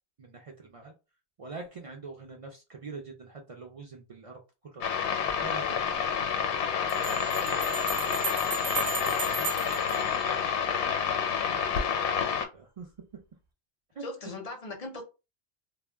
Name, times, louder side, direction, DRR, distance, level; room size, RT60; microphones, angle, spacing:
voice 1, 0.2-0.9 1.4-5.0 5.4-6.0 8.9-9.5 11.7-12.9 13.9-14.0, right 4 dB, 60° right, 0.3 m, -45 dB
sound 1, 4.8-12.5, left 7 dB, 80° left, 0.9 m, -28 dB
voice 2, 6.9-7.7 14.0-15.0, left 2 dB, 45° left, 0.5 m, -41 dB
sound 2, 6.9-10.9, right 5 dB, 45° right, 0.8 m, -36 dB
2.1 x 2.1 x 3.3 m
omnidirectional pair, 1.1 m